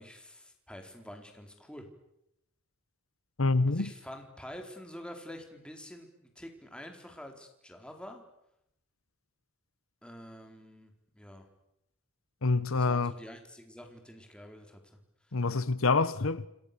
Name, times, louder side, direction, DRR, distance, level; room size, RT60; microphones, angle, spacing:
voice 1, 0.0-1.9 3.7-8.2 10.0-11.5 12.7-14.8, equal, 5° left, 4.2 m, -47 dB
voice 2, 3.4-3.9 12.4-13.1 15.3-16.5, left 3 dB, 80° left, 1.1 m, -26 dB
29.0 x 28.5 x 7.0 m
head